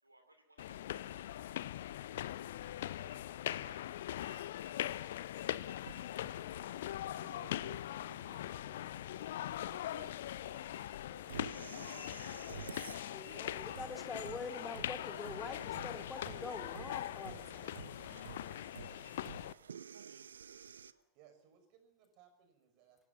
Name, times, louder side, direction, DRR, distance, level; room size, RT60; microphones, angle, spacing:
voice 1, 0.0-1.7 2.6-4.5 5.2-6.3 8.2-8.6 10.4-11.6 14.5-15.6 16.3-16.6 16.9-17.4 20.0-20.4 20.8-21.1, right 1 dB, 85° right, 7 dB, 2.7 m, -64 dB
sound 1, 0.6-19.5, left 12 dB, 60° left, 0.7 m, -41 dB
sound 2, 5.9-20.9, right 7 dB, 70° right, 0.7 m, -52 dB
voice 2, 13.0-18.0, left 4 dB, 15° left, 5 dB, 3.4 m, -45 dB
voice 3, 21.1-23.1, right 8 dB, 45° right, 7 dB, 5.9 m, -65 dB
24.5 x 16.5 x 7.2 m, 0.79 s
figure-of-eight pair, 90°, 0 cm